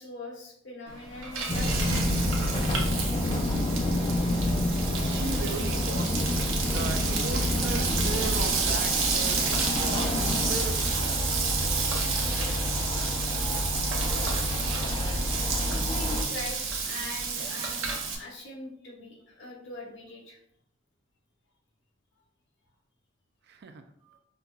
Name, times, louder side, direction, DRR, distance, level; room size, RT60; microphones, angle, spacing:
voice 1, 0.0-1.9 3.9-4.1 15.7-20.4 24.0-24.2, left 2 dB, 65° left, -1 dB, 1.0 m, -42 dB
Frying (food), 0.9-18.2, right 5 dB, 90° right, 0.7 m, -31 dB
sound 1, 1.5-16.2, left 1 dB, 25° left, 0.4 m, -29 dB
voice 2, 5.0-6.2 6.6-10.1 10.5-11.2 23.6-23.7, right 4 dB, 55° right, 7 dB, 0.4 m, -37 dB
5.5 x 2.3 x 2.3 m, 0.70 s
head